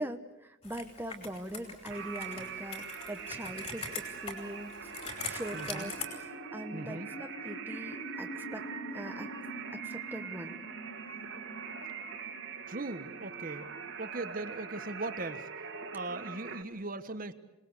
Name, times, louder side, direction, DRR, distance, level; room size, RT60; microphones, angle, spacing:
voice 1, 0.0-8.7 8.9-9.3 9.7-10.5, right 1 dB, 10° right, 5 dB, 1.2 m, -42 dB
Computer keyboard, 0.6-6.1, left 3 dB, 30° left, 5.2 m, -42 dB
sound 1, 1.9-16.6, right 6 dB, 65° right, 2.2 m, -43 dB
sound 2, 3.4-15.1, equal, 55° left, 2.1 m, -48 dB
voice 2, 5.5-5.9 6.7-7.1 12.7-13.7 14.0-15.5 15.9-17.3, right 2 dB, 40° right, 9 dB, 1.2 m, -39 dB
27.5 x 20.5 x 8.3 m, 1.0 s
head